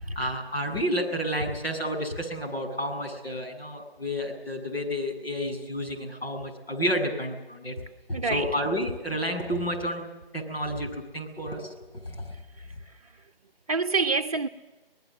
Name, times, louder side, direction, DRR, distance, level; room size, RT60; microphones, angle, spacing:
voice 1, 0.0-7.7 8.1-10.1 10.3-11.7 12.0-12.3, equal, 80° left, 7.9 m, -30 dB
voice 2, 8.1-8.6 12.6-12.7 13.7-14.5, right 4 dB, 40° right, 0.7 m, -27 dB
27.0 x 19.5 x 7.6 m
figure-of-eight pair, 160°, 30 cm